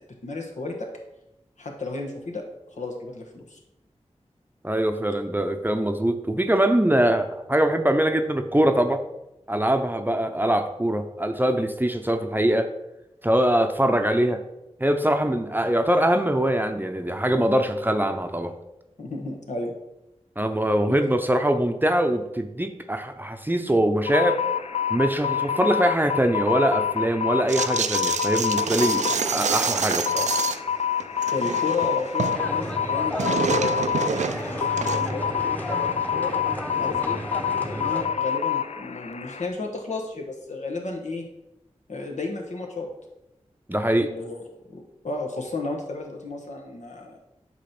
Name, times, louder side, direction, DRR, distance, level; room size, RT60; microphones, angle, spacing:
voice 1, 0.2-0.9 1.6-2.4 2.7-3.6 19.0-19.7 20.9-21.0 31.3-36.3 36.8-37.2 37.6-41.2 41.9-42.9 44.0-44.5 44.7-47.2, left 3 dB, 85° left, 1 dB, 1.3 m, -33 dB
voice 2, 4.6-9.0 9.5-12.7 13.2-14.4 14.8-18.5 20.4-24.4 24.9-30.3 43.7-44.1, right 1 dB, 15° right, 6 dB, 0.6 m, -23 dB
sound 1, 24.1-39.5, left 8 dB, 65° left, 0.4 m, -27 dB
sound 2, 27.5-30.7 31.0-32.4 32.7-35.2, right 5 dB, 80° right, 0.4 m, -27 dB
sound 3, 32.3-38.1, equal, 15° left, 1.0 m, -33 dB
8.4 x 3.1 x 5.9 m, 0.91 s
wide cardioid pair, 50°, 12 cm